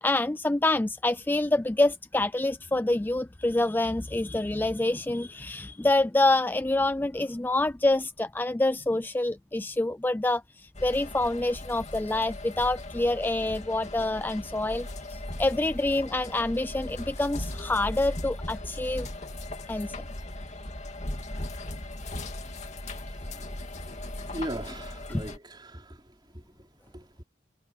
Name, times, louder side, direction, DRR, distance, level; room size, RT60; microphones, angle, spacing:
voice 1, 0.0-19.1 19.7-19.9 25.1-25.2, left 2 dB, 10° left, 0.3 m, -27 dB
sound 1, 10.7-25.4, left 1 dB, 40° left, 2.5 m, -38 dB
voice 2, 22.8-27.2, right 1 dB, 25° right, 4.9 m, -41 dB
head